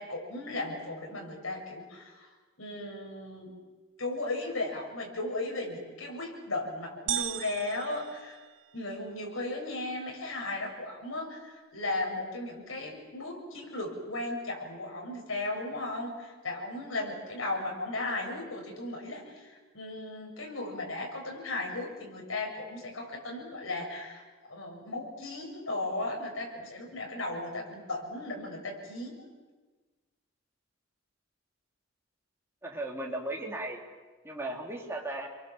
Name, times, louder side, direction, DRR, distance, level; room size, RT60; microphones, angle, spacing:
voice 1, 0.0-2.3 2.6-3.5 4.0-8.4 8.7-29.2, left 2 dB, 90° left, 0 dB, 7.0 m, -36 dB
sound 1, 7.1-9.0, right 10 dB, 65° right, 1.1 m, -36 dB
voice 2, 32.6-33.8 34.2-35.3, right 1 dB, 15° right, 0 dB, 3.6 m, -36 dB
29.0 x 23.0 x 7.4 m, 1.3 s
head